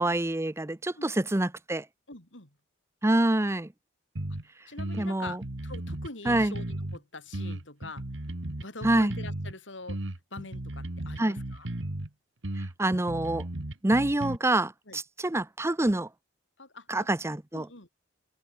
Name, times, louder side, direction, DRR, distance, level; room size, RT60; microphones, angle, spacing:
voice 1, 0.0-1.8 3.0-3.7 5.0-5.4 6.3-6.6 8.8-9.1 11.2-11.4 12.8-13.4 13.8-16.1 16.9-17.7, right 1 dB, 15° right, 0.7 m, -26 dB
voice 2, 0.9-1.3 2.1-2.5 4.7-8.1 8.6-10.0 10.3-11.7 14.9-15.0 16.6-17.1 17.5-17.9, left 3 dB, 85° left, 6.1 m, -44 dB
sound 1, 4.2-4.4 4.8-7.0 7.3-9.5 9.9-12.1 12.4-14.4, right 1 dB, 85° right, 1.8 m, -35 dB
open air
head